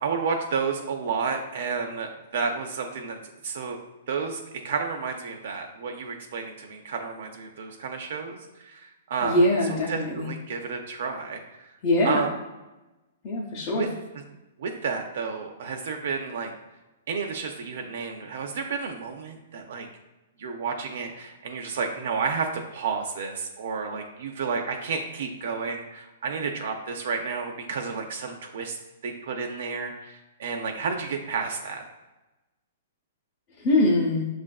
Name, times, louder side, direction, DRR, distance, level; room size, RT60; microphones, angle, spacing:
voice 1, 0.0-3.2 3.4-3.8 4.1-9.4 9.9-11.7 12.0-12.3 13.8-13.9 14.6-16.5 17.1-19.9 20.4-28.8 29.0-31.8, right 5 dB, 70° right, 3 dB, 0.4 m, -31 dB
voice 2, 9.2-10.3 11.8-12.2 13.2-13.9 33.6-34.2, left 1 dB, 35° left, -4 dB, 0.7 m, -23 dB
6.1 x 2.4 x 2.3 m, 1.1 s
hypercardioid pair, 150°, 0 cm